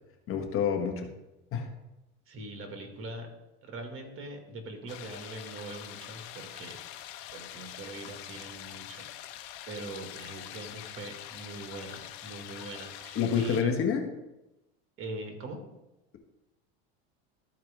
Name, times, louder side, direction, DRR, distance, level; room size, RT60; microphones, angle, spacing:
voice 1, 0.3-1.1 1.5-1.7 13.1-14.1, left 7 dB, 40° left, 4 dB, 1.4 m, -28 dB
voice 2, 2.3-3.3 3.6-6.8 7.3-9.0 9.7-13.7 15.0-15.6, right 2 dB, 40° right, 4 dB, 1.9 m, -42 dB
sound 1, 4.9-13.6, left 12 dB, 70° left, 0.9 m, -44 dB
13.5 x 4.6 x 3.6 m, 0.95 s
supercardioid pair, 110°, 32 cm